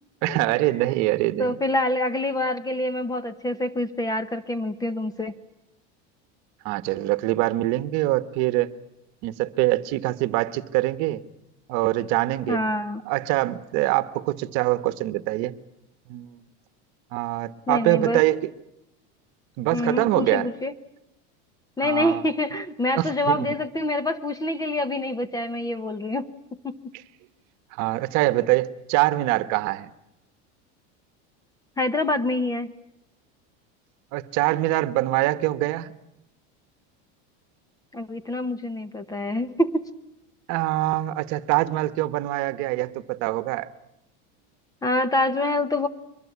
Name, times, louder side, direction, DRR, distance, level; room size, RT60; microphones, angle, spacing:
voice 1, 0.2-1.6 6.6-8.7 9.2-11.2 11.7-12.6 13.1-15.5 16.1-16.4 17.1-18.5 19.6-20.5 21.8-22.2 23.0-23.5 27.8-29.9 34.1-35.9 40.5-43.7, right 17 dB, 55° right, 14 dB, 1.2 m, -24 dB
voice 2, 1.4-5.3 12.5-13.0 17.7-18.2 19.7-20.7 21.8-26.3 26.6-26.8 31.8-32.7 37.9-39.9 44.8-45.9, left 1 dB, 10° left, 14 dB, 0.9 m, -26 dB
23.5 x 21.0 x 8.5 m, 0.85 s
supercardioid pair, 150°, 34 cm